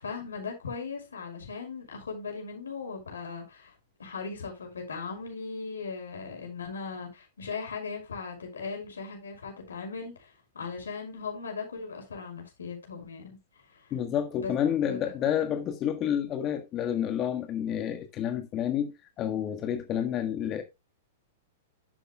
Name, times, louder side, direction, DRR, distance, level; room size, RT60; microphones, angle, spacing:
voice 1, 0.0-3.7 4.0-13.4 13.7-13.9 14.4-14.5 14.8-15.1, left 5 dB, 90° left, 5.7 m, -38 dB
voice 2, 13.9-18.9 19.2-20.6, left 9 dB, 35° left, 1.5 m, -29 dB
11.5 x 8.5 x 2.4 m
hypercardioid pair, 115°, 0 cm